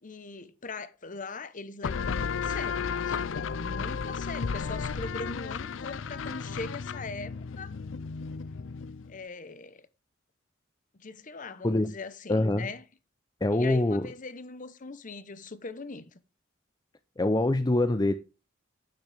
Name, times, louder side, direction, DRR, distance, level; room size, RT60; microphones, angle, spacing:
voice 1, 0.0-7.7 9.1-9.9 10.9-12.8 13.5-16.2, left 3 dB, 45° left, 0.9 m, -41 dB
sound 1, 1.8-9.2, left 5 dB, 80° left, 0.5 m, -33 dB
voice 2, 12.3-12.7 13.4-14.1 17.2-18.2, left 2 dB, 20° left, 0.6 m, -24 dB
10.5 x 9.1 x 3.4 m
head